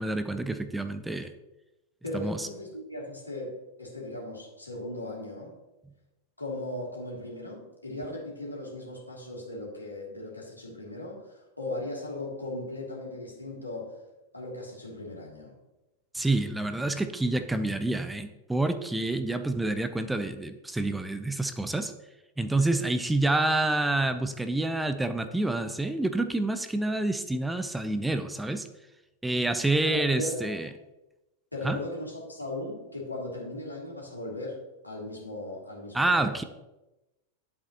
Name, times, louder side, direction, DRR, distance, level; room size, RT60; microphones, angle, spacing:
voice 1, 0.0-1.3 2.1-2.5 16.1-21.9 22.4-28.7 29.2-30.7 31.6-31.8 35.9-36.4, right 2 dB, 5° right, 9 dB, 0.6 m, -28 dB
voice 2, 2.0-5.5 6.4-14.0 14.3-15.6 29.8-30.6 31.5-36.4, left 1 dB, 85° left, -3 dB, 2.8 m, -37 dB
10.5 x 7.8 x 2.9 m, 0.99 s
figure-of-eight pair, 90°, 0 cm